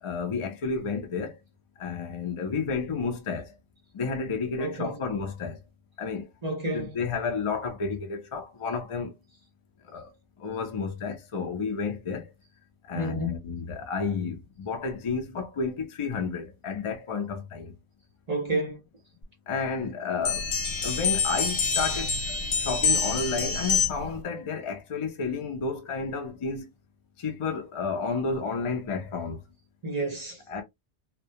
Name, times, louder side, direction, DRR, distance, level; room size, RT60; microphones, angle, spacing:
voice 1, 0.0-1.4 1.8-3.5 3.9-5.6 6.0-6.3 6.7-9.2 9.8-10.1 10.4-12.3 12.9-17.7 19.5-20.5 20.8-26.7 27.2-29.4 30.5-30.6, left 5 dB, 45° left, 0.4 m, -31 dB
voice 2, 4.6-5.0 6.4-6.9 12.9-13.3 18.3-18.8 29.8-30.6, right 1 dB, 40° right, 0.7 m, -30 dB
sound 1, 20.2-24.2, left 5 dB, 70° left, 1.0 m, -26 dB
2.2 x 2.1 x 2.6 m
omnidirectional pair, 1.2 m